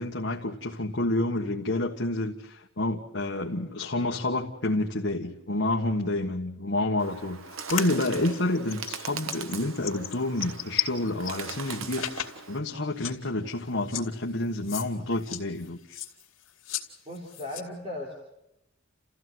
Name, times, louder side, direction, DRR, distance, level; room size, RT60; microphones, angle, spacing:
voice 1, 0.0-16.0, left 2 dB, 60° left, 1.4 m, -29 dB
Bird, 7.0-12.6, right 6 dB, 80° right, 1.1 m, -40 dB
sound 1, 7.7-11.3 11.7-12.4 12.7-12.8 13.0-13.2 13.9-14.1 14.6-14.9 15.1-16.9 17.1-17.6, left 12 dB, 75° left, 2.6 m, -34 dB
voice 2, 17.1-18.1, left 1 dB, 30° right, 3.5 m, -37 dB
29.5 x 15.0 x 7.9 m
head